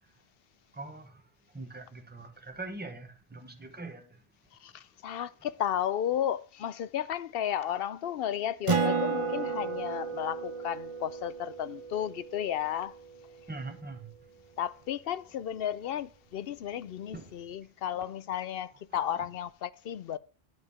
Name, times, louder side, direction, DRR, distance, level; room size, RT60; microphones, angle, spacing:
voice 1, 0.7-1.2 1.5-4.2 13.5-14.1 17.1-17.3, right 3 dB, 10° right, 1.2 m, -42 dB
voice 2, 4.6-12.9 14.6-20.2, left 10 dB, 65° left, 0.8 m, -33 dB
Acoustic guitar, 8.7-13.6, right 5 dB, 30° right, 0.9 m, -33 dB
9.5 x 4.9 x 7.0 m
omnidirectional pair, 1.1 m